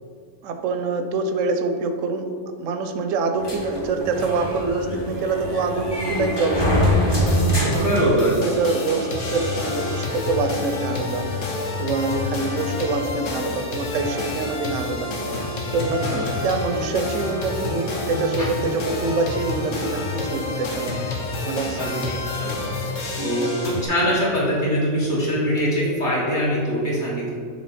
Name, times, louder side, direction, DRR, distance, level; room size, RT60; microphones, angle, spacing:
voice 1, 0.4-2.3 2.6-6.7 7.6-11.3 11.8-15.1 15.7-21.1 21.4-21.9 23.2-23.5, right 3 dB, 90° right, 6 dB, 1.0 m, -25 dB
sound 1, 3.4-8.7, equal, 25° left, 0.9 m, -24 dB
Male singing, 4.7-10.1, right 3 dB, 60° right, 0.6 m, -36 dB
sound 2, 7.3-23.9, left 3 dB, 90° left, 1.3 m, -28 dB
voice 2, 7.8-8.3 16.0-16.2 21.8-22.5 23.2-27.3, equal, 40° left, -7 dB, 1.8 m, -23 dB
6.2 x 3.6 x 4.2 m, 2.2 s
omnidirectional pair, 1.3 m